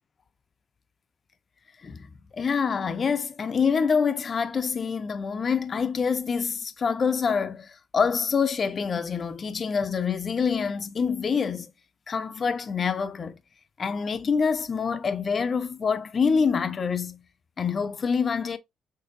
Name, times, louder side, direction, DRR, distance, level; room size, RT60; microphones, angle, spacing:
voice 1, 2.3-11.7 12.1-13.4 13.8-17.2 17.6-18.6, left 6 dB, 30° left, 0.4 m, -26 dB
6.3 x 2.6 x 2.5 m
cardioid pair, 155°, 0 cm